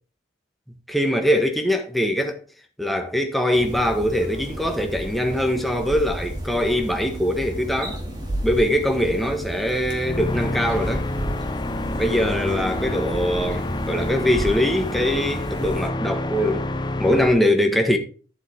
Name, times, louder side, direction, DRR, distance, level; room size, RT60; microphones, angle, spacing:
voice 1, 0.9-2.4 2.8-8.0 8.4-11.1 12.0-16.7 17.0-18.0, equal, ahead, 1.5 m, -22 dB
sound 1, 3.5-15.9, equal, 25° right, 2.5 m, -32 dB
sound 2, 10.0-17.3, left 1 dB, 25° left, 0.7 m, -28 dB
12.0 x 7.4 x 3.6 m
head